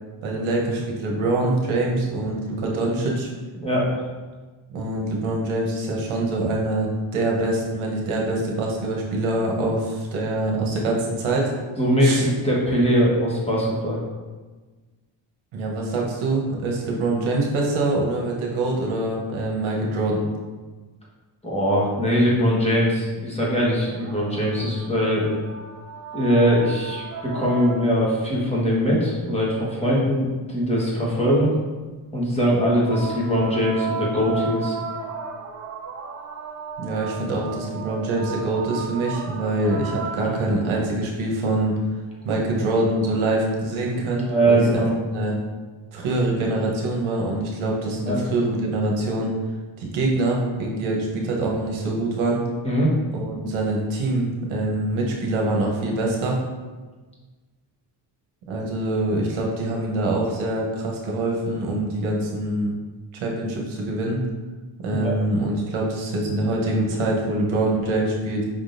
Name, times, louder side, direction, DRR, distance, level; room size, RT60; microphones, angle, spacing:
voice 1, 0.2-3.3 4.7-11.5 12.0-12.2 15.5-20.3 36.8-41.7 42.2-44.8 45.1-45.4 45.9-49.3 49.8-52.4 53.1-56.4 58.5-62.7 63.1-64.2 64.8-68.4, right 2 dB, 75° right, -1 dB, 1.0 m, -24 dB
voice 2, 3.5-4.0 11.8-14.0 21.4-25.3 26.1-31.5 32.1-34.7 44.3-44.9 48.1-48.2 52.6-52.9 64.9-65.2, equal, 10° left, -6 dB, 1.2 m, -21 dB
sound 1, 23.5-28.2 32.6-40.8 42.1-42.2, right 6 dB, 35° right, 0.6 m, -35 dB
5.4 x 3.7 x 2.6 m, 1.3 s
cardioid pair, 120°, 49 cm